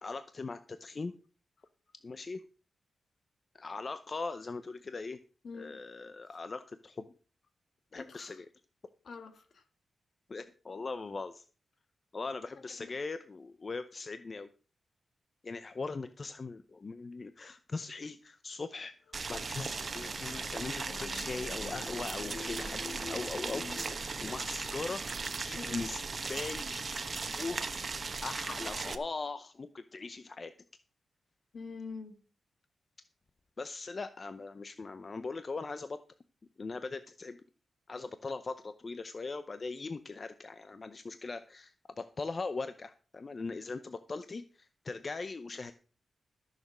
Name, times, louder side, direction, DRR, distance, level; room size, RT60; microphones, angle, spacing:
voice 1, 0.0-1.1 2.0-2.4 3.5-5.2 5.5-7.1 7.9-8.5 10.3-11.4 12.1-14.5 15.4-18.9 19.3-25.0 25.4-26.0 26.3-27.1 27.4-27.9 28.2-30.5 33.6-36.0 36.6-37.4 37.9-45.7, left 3 dB, 35° left, 11 dB, 0.6 m, -40 dB
voice 2, 5.4-5.7 8.0-8.3 9.1-9.6 12.8-12.9 25.6-25.9 31.5-32.1, left 4 dB, 60° left, 8 dB, 1.9 m, -44 dB
sound 1, 19.1-23.9, left 5 dB, 80° left, 1.4 m, -47 dB
Boiling, 19.1-28.9, right 4 dB, 35° right, 1.1 m, -37 dB
14.0 x 6.6 x 6.1 m, 0.38 s
wide cardioid pair, 130°, 0 cm